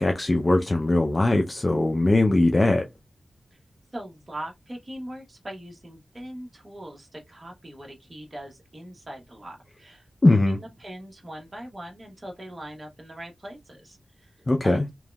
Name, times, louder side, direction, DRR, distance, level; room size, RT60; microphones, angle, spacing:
voice 1, 0.0-2.9 10.2-10.6 14.5-14.9, left 2 dB, 35° left, 0.4 m, -20 dB
voice 2, 3.9-14.3 14.6-14.9, right 1 dB, 35° right, 1.0 m, -41 dB
3.0 x 2.6 x 2.2 m
cardioid pair, 55°, 0 cm